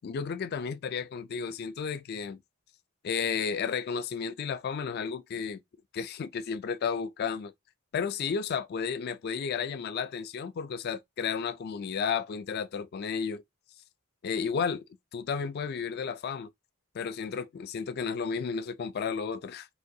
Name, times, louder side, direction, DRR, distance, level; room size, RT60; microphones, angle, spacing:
voice 1, 0.0-2.4 3.0-5.6 5.9-7.5 7.9-13.4 14.2-14.8 15.1-16.5 16.9-19.7, left 6 dB, 45° left, 0.3 m, -32 dB
3.6 x 2.3 x 2.6 m
head